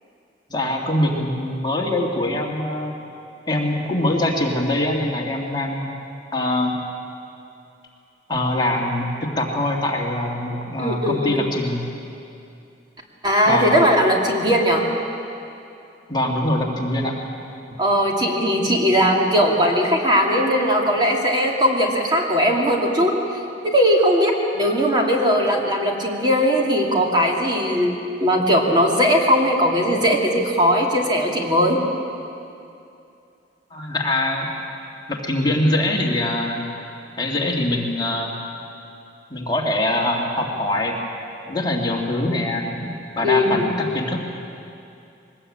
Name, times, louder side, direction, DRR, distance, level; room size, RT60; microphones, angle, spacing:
voice 1, 0.5-2.9 3.5-5.9 6.3-6.8 8.3-11.8 13.5-13.8 16.1-17.2 33.7-34.5 35.1-36.6 37.2-38.3 39.3-41.0 41.5-44.2, left 1 dB, 25° left, -1 dB, 2.3 m, -23 dB
voice 2, 10.8-11.4 13.2-14.9 17.8-31.8 43.2-43.7, equal, 25° right, 0 dB, 2.6 m, -19 dB
22.0 x 20.0 x 8.8 m, 2.6 s
head